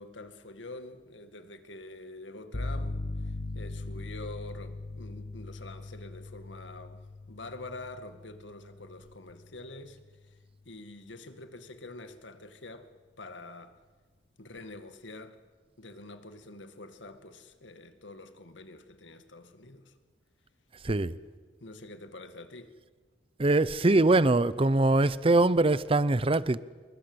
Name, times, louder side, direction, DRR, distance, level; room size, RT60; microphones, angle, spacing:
voice 1, 0.0-10.4 10.7-12.9 13.2-13.8 14.4-15.4 15.8-19.9 21.6-22.7, left 2 dB, 85° left, 2.0 m, -46 dB
sound 1, 2.5-10.3, left 2 dB, 65° left, 1.8 m, -40 dB
voice 2, 23.4-26.6, right 2 dB, 30° right, 0.7 m, -23 dB
27.5 x 21.5 x 8.0 m
head